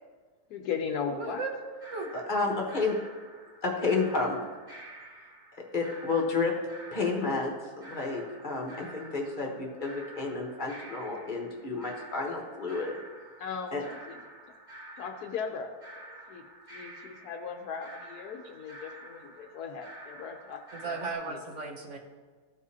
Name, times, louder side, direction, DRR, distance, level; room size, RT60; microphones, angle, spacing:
voice 1, 0.5-1.4 13.4-14.2 15.0-15.7 16.3-16.4 16.7-21.0 21.3-21.4, left 6 dB, 75° left, 4 dB, 1.1 m, -37 dB
voice 2, 1.1-2.1 20.7-22.0, right 3 dB, 55° right, 2 dB, 1.1 m, -36 dB
sound 1, 1.4-21.1, right 1 dB, 85° right, 3.0 m, -49 dB
voice 3, 2.1-3.0 3.6-4.4 5.7-6.5 6.9-13.0 13.7-13.8, left 3 dB, 35° left, 0 dB, 1.1 m, -30 dB
14.0 x 4.8 x 2.8 m, 1.5 s
omnidirectional pair, 1.7 m